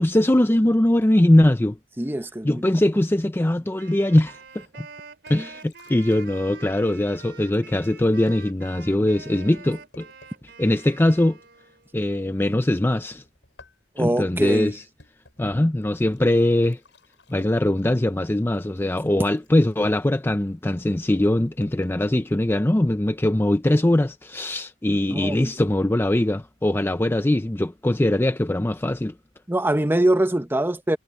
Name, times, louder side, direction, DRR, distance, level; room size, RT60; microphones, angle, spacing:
voice 1, 0.0-1.8 2.4-4.9 5.3-10.1 10.6-11.4 11.9-13.2 14.0-14.8 15.4-16.8 17.3-29.1, left 1 dB, 15° left, 0.5 m, -21 dB
voice 2, 2.0-2.6 14.0-14.7 25.1-25.5 29.5-31.0, right 1 dB, 10° right, 0.9 m, -23 dB
Wind instrument woodwind instrument, 3.8-11.9, right 4 dB, 65° right, 4.2 m, -45 dB
sound 1, 4.1-10.5 13.2-22.0, left 3 dB, 80° left, 7.0 m, -56 dB
head